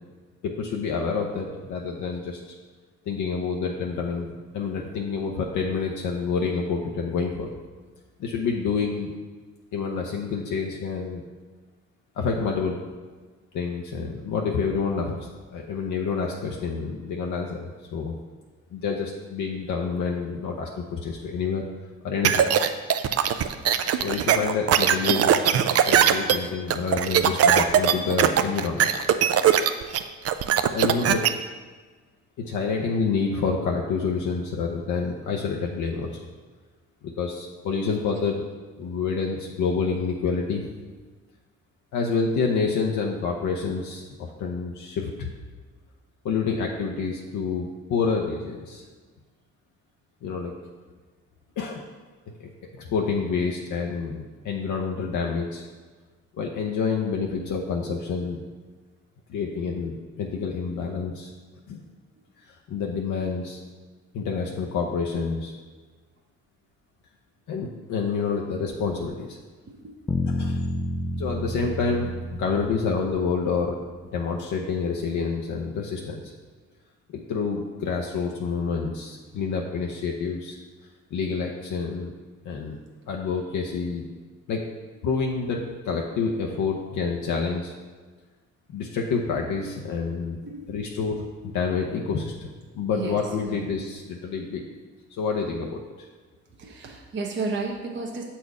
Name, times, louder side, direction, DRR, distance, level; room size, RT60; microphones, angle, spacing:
voice 1, 0.4-2.4 3.1-4.3 4.5-7.5 8.2-9.1 9.7-11.2 12.2-12.8 13.5-15.2 15.5-18.2 18.7-21.6 22.0-22.5 24.0-28.9 30.7-31.2 32.4-36.2 37.0-38.4 38.8-40.6 41.9-45.3 46.2-48.8 50.2-50.5 51.6-51.8 52.4-55.7 56.4-58.4 59.3-61.3 61.7-61.8 62.7-63.6 64.1-65.5 67.5-69.4 70.3-70.6 71.2-73.8 74.1-76.2 77.1-80.6 81.1-82.1 82.4-82.8 83.1-84.0 84.5-84.6 85.0-87.7 88.7-90.4 90.7-91.2 91.5-92.5 92.7-94.6 95.1-95.8, left 5 dB, 75° left, 0 dB, 0.8 m, -28 dB
sound 1, 22.2-31.3, right 9 dB, 55° right, 0.5 m, -20 dB
voice 2, 69.7-70.0 89.6-89.7 90.4-90.7 92.9-93.7 96.6-98.2, right 3 dB, 40° right, 0 dB, 0.9 m, -33 dB
sound 2, 70.1-74.2, left 1 dB, 15° left, 0.4 m, -30 dB
6.9 x 4.3 x 4.8 m, 1.4 s
cardioid pair, 90°, 30 cm